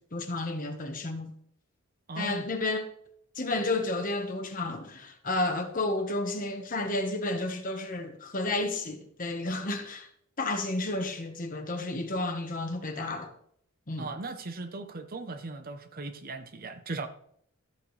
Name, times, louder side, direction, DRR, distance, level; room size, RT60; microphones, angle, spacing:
voice 1, 0.1-1.3 2.2-2.8 3.4-10.1 10.4-13.3 13.9-14.1, left 2 dB, 40° left, 1.3 m, -31 dB
voice 2, 2.1-2.4 14.0-17.1, right 3 dB, 45° right, 0.8 m, -38 dB
13.5 x 7.8 x 3.3 m
head